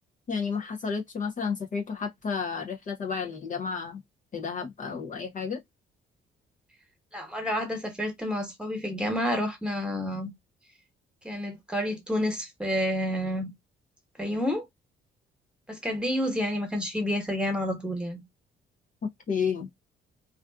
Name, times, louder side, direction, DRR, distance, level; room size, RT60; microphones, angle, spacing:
voice 1, 0.3-4.0 4.3-5.6 19.3-19.7, left 6 dB, 40° left, 0.6 m, -31 dB
voice 2, 7.1-10.3 11.2-13.5 14.2-14.6 15.7-18.2, equal, 5° right, 1.2 m, -29 dB
2.4 x 2.4 x 2.2 m
cardioid pair, 90°, 20 cm